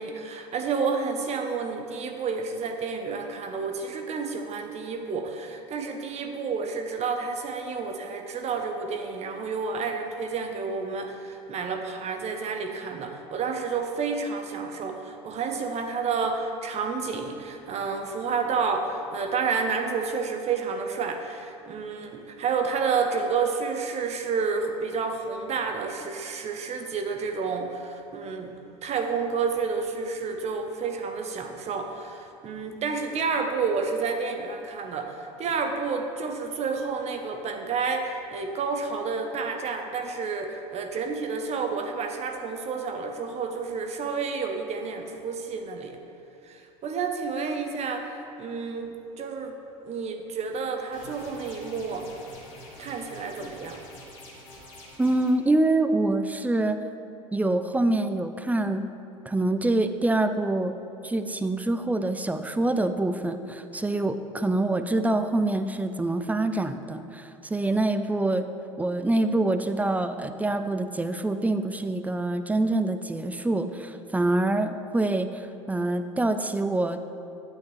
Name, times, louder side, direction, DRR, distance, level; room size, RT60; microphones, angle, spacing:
voice 1, 0.0-28.5 28.8-46.0 46.4-49.6 49.8-52.1 52.8-53.8, right 5 dB, 40° right, 5 dB, 0.9 m, -30 dB
sound 1, 50.9-55.3, left 1 dB, 65° left, 1.9 m, -46 dB
voice 2, 55.0-56.8 57.3-58.9 59.3-60.8 61.0-68.5 68.8-77.0, right 2 dB, 10° right, 9 dB, 0.4 m, -25 dB
9.3 x 8.2 x 3.2 m, 2.7 s
hypercardioid pair, 70°, 17 cm